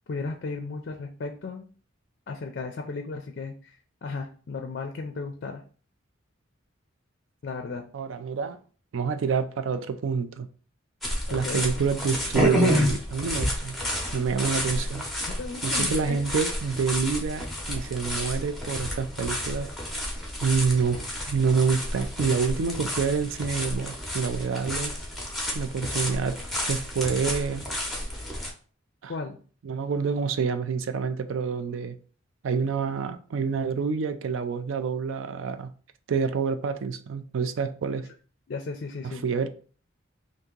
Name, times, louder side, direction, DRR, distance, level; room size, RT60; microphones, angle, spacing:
voice 1, 0.1-1.7 2.3-5.6 7.4-7.8 11.3-11.6 15.2-16.2 29.1-29.4 38.5-39.3, left 4 dB, 50° left, 0.4 m, -35 dB
voice 2, 7.9-8.6 8.9-10.5 11.3-13.8 14.1-15.1 15.6-19.7 20.4-21.0 21.3-25.0 25.5-26.4 26.7-27.7 29.0-29.1 29.6-32.0 32.4-35.7 36.1-38.1 39.0-39.5, right 5 dB, 70° right, 0.4 m, -27 dB
sound 1, 11.0-28.5, left 1 dB, ahead, 0.6 m, -30 dB
2.8 x 2.6 x 3.7 m
head